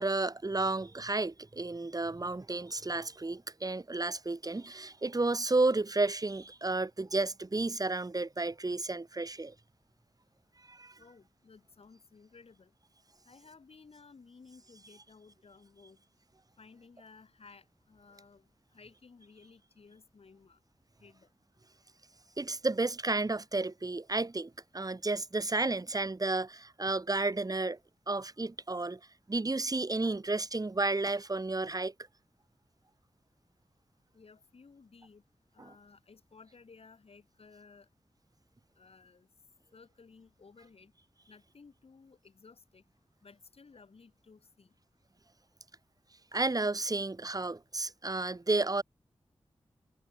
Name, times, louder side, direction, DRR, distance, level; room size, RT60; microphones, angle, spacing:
voice 1, 0.0-9.5 10.7-11.0 22.4-27.8 28.1-29.0 29.3-31.9 35.6-35.7 46.3-48.8, right 2 dB, 35° right, 2.7 m, -32 dB
voice 2, 11.0-12.7 13.2-16.0 16.6-20.6 21.0-21.3 34.1-35.2 35.5-37.9 38.8-39.3 39.7-40.9 41.3-42.8 43.2-44.7, left 4 dB, 75° left, 7.8 m, -57 dB
wide cardioid pair, 60°, 10 cm